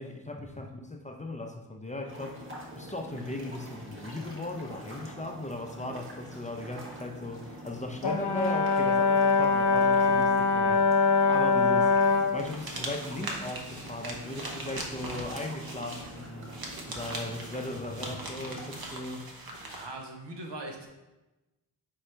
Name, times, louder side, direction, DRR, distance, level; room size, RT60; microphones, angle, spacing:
voice 1, 0.0-2.4 2.8-12.0 12.3-16.5 16.9-19.3, left 1 dB, 20° left, 3 dB, 0.5 m, -37 dB
sound 1, 2.1-18.8, right 1 dB, 30° right, 1.2 m, -45 dB
Brass instrument, 8.0-12.4, left 4 dB, 65° left, 0.5 m, -23 dB
sound 2, 12.4-19.9, right 1 dB, 55° right, 0.9 m, -40 dB
voice 2, 19.5-20.9, right 2 dB, 85° right, 1 dB, 0.9 m, -41 dB
4.3 x 3.8 x 3.2 m, 1.0 s
cardioid pair, 50°, 42 cm